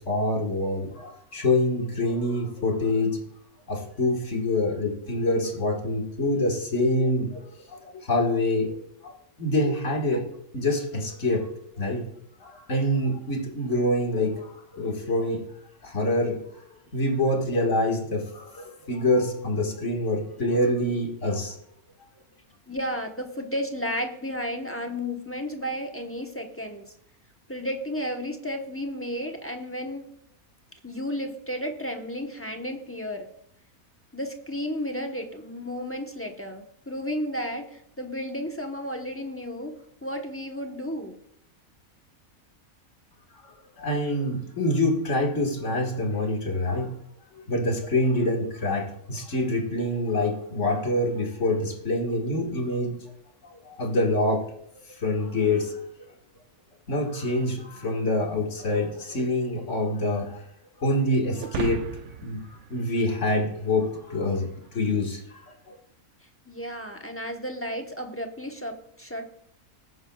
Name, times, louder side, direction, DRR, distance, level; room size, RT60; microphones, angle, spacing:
voice 1, 0.0-3.2 3.7-8.8 9.0-10.2 10.5-11.5 11.8-12.1 12.4-15.4 15.8-16.4 16.9-21.6 43.4-43.5 43.8-46.9 47.5-52.9 53.4-54.5 54.9-55.8 56.9-60.4 60.8-61.9 62.2-65.4 65.7-65.8, left 1 dB, 55° left, 1 dB, 2.1 m, -26 dB
voice 2, 22.7-26.9 27.5-30.0 30.8-33.3 34.1-41.1 66.5-69.2, equal, 10° left, 3 dB, 0.9 m, -33 dB
sound 1, 61.4-63.9, right 8 dB, 65° right, 0.9 m, -35 dB
19.0 x 9.8 x 2.3 m, 0.70 s
omnidirectional pair, 1.5 m